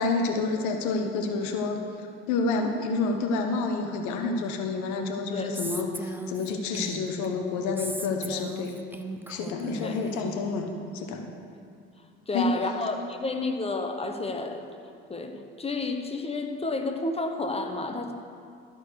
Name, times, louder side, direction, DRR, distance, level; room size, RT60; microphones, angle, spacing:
voice 1, 0.0-1.8 2.3-8.7 9.3-10.7 10.9-11.2 12.3-12.6, left 3 dB, 75° left, 4 dB, 1.2 m, -28 dB
Female speech woman speaking, 5.5-7.3 7.8-10.3, right 2 dB, 5° right, 0.6 m, -37 dB
voice 2, 12.3-14.6 15.1-15.3 15.6-18.1, left 3 dB, 20° left, 5 dB, 1.1 m, -30 dB
14.0 x 4.6 x 6.5 m, 2.4 s
supercardioid pair, 75°, 30 cm